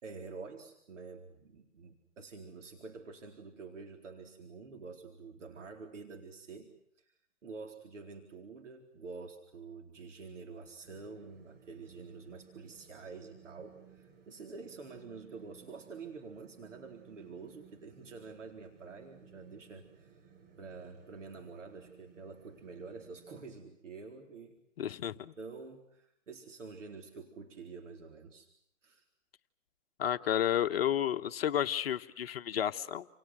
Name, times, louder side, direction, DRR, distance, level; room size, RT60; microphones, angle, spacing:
voice 1, 0.0-6.7 7.0-7.1 7.4-20.2 20.6-24.6 25.4-28.5 28.8-29.0, right 4 dB, 70° right, 3 dB, 4.2 m, -48 dB
sound 1, 10.8-23.4, right 7 dB, 45° right, 7.6 m, -60 dB
voice 2, 24.8-25.3 30.0-33.1, left 10 dB, 50° left, 8 dB, 1.2 m, -31 dB
29.5 x 29.0 x 6.2 m, 0.72 s
hypercardioid pair, 145°, 38 cm